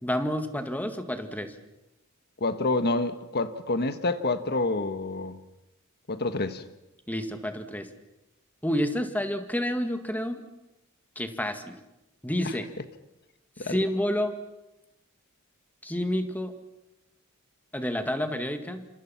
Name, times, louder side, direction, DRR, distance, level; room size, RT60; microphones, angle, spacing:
voice 1, 0.0-1.5 7.1-7.9 8.6-10.4 11.2-11.8 12.2-12.7 13.6-14.3 15.8-16.5 17.7-18.9, equal, 10° left, 2.0 m, -29 dB
voice 2, 2.4-5.4 6.1-6.6 13.6-13.7, left 2 dB, 50° left, 1.5 m, -28 dB
28.0 x 26.5 x 5.9 m
head